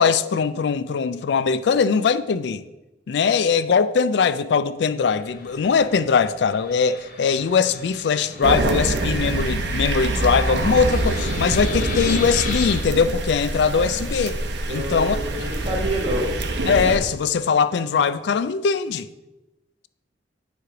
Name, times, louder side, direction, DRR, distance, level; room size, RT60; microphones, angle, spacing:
voice 1, 0.0-2.6 3.1-14.4 14.7-15.2 16.7-19.1, left 5 dB, 70° left, 0.3 m, -21 dB
Fixed-wing aircraft airplane, 5.1-12.8, left 3 dB, 50° left, 1.0 m, -37 dB
sound 1, 8.4-17.0, right 2 dB, 70° right, 0.7 m, -25 dB
voice 2, 14.7-16.3, right 1 dB, 30° right, 1.3 m, -27 dB
9.3 x 3.1 x 4.9 m
head